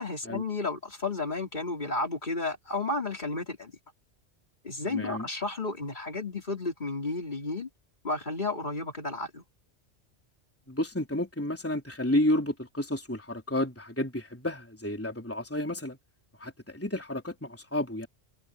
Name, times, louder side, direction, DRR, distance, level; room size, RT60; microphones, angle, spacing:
voice 1, 0.0-3.7 4.6-7.7 8.0-9.4, left 3 dB, 40° left, 3.6 m, -32 dB
voice 2, 4.9-5.3 10.7-16.0 16.4-18.1, left 1 dB, 10° left, 3.2 m, -31 dB
omnidirectional pair, 1.2 m